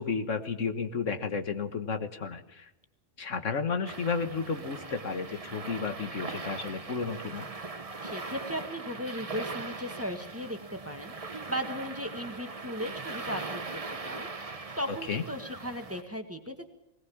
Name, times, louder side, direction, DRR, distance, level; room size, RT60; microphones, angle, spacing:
voice 1, 0.0-2.7 3.2-7.5 14.9-15.2, left 5 dB, 75° left, 7 dB, 1.8 m, -32 dB
sound 1, 3.8-16.0, right 3 dB, 30° right, 1.2 m, -40 dB
voice 2, 8.0-14.3 14.8-16.7, equal, 10° right, 6 dB, 1.8 m, -37 dB
20.0 x 19.5 x 7.2 m, 0.89 s
omnidirectional pair, 1.3 m